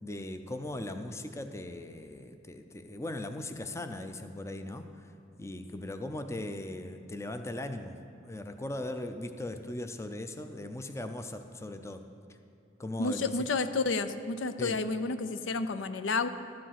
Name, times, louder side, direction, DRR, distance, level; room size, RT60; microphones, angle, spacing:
voice 1, 0.0-5.1 5.4-7.9 8.2-12.0 12.3-12.4 12.8-13.3 14.6-14.8, left 1 dB, 15° left, 7 dB, 0.5 m, -39 dB
voice 2, 13.0-16.3, left 3 dB, 80° left, 12 dB, 0.5 m, -30 dB
12.5 x 7.8 x 5.8 m, 2.7 s
head